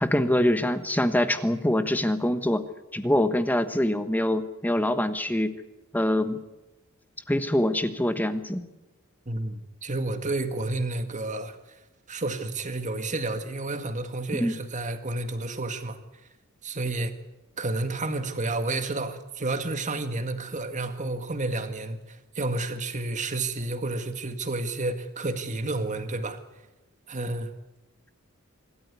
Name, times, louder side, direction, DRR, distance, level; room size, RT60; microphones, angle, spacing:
voice 1, 0.0-2.6 2.9-5.5 5.9-6.4 7.3-8.6 14.3-14.5, left 1 dB, 10° left, 10 dB, 1.1 m, -24 dB
voice 2, 9.3-11.6 12.1-16.0 16.6-17.1 17.6-26.4 27.1-27.5, right 2 dB, 35° right, 8 dB, 1.9 m, -30 dB
25.5 x 13.5 x 9.6 m, 1.0 s
head